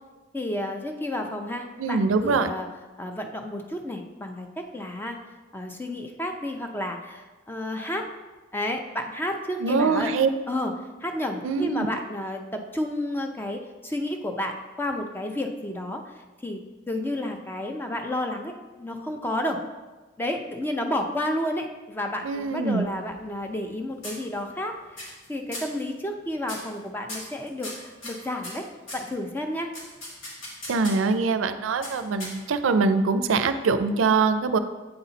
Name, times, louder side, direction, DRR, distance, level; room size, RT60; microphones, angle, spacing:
voice 1, 0.3-2.7 3.0-5.2 5.5-8.1 8.5-10.1 10.5-10.7 11.0-19.6 20.2-28.7 28.9-29.7, left 1 dB, 10° left, 4 dB, 0.5 m, -31 dB
voice 2, 1.8-2.5 9.6-10.3 11.4-11.9 22.2-22.9 30.7-34.6, right 4 dB, 85° right, 10 dB, 0.4 m, -23 dB
sound 1, 22.8-23.7 24.0-24.6 25.0-25.3 25.5-25.8 26.4-26.8 27.1-29.1 29.7-31.1 31.8-32.7, left 1 dB, 85° left, 2.1 m, -38 dB
7.8 x 4.1 x 3.9 m, 1.2 s
head